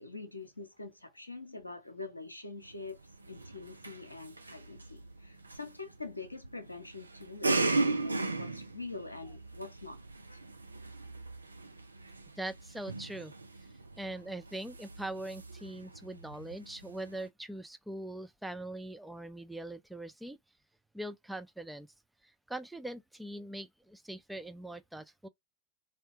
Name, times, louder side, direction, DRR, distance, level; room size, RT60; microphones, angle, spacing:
voice 1, 0.0-3.0 3.3-10.5, left 3 dB, 85° left, 0.7 m, -45 dB
sound 1, 2.6-17.3, right 3 dB, 80° right, 0.5 m, -38 dB
voice 2, 12.4-13.3 14.0-20.4 20.9-21.9 22.5-25.3, right 1 dB, 5° right, 0.4 m, -42 dB
3.2 x 2.8 x 3.4 m
figure-of-eight pair, 90°, 0 cm